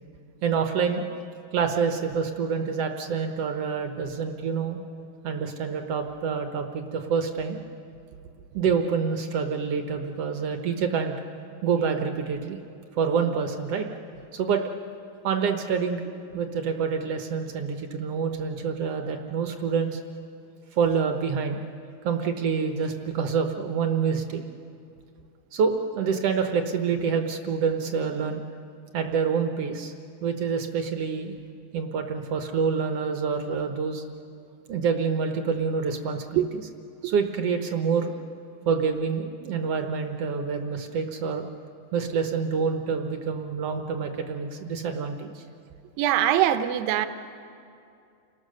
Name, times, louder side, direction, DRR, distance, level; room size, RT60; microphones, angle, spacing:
voice 1, 0.4-1.0 1.5-4.8 5.2-7.6 8.5-11.1 11.6-12.6 12.9-13.9 14.3-14.6 15.2-16.0 16.3-20.0 20.7-21.6 22.0-24.4 25.5-28.4 28.9-29.9 30.2-31.4 31.7-34.0 34.7-36.6 37.0-38.1 38.6-41.5 41.9-45.4, right 6 dB, 65° right, 5 dB, 1.6 m, -27 dB
voice 2, 46.0-47.1, right 12 dB, 90° right, 9 dB, 2.5 m, -22 dB
29.5 x 20.0 x 6.5 m, 2.5 s
omnidirectional pair, 4.0 m